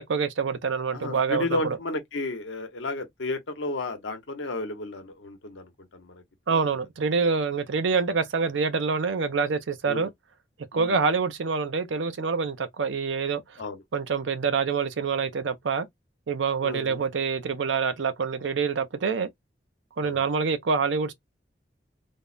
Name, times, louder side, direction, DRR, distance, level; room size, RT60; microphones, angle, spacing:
voice 1, 0.0-1.8 6.5-10.1 10.7-13.4 13.9-15.9 16.3-19.3 20.0-21.1, right 5 dB, 85° right, 0.6 m, -26 dB
voice 2, 0.9-6.2 6.5-6.6 9.9-10.1 10.7-11.0 13.6-13.8 16.6-17.0 20.0-20.1, left 2 dB, 85° left, 0.8 m, -33 dB
3.5 x 2.1 x 2.3 m
head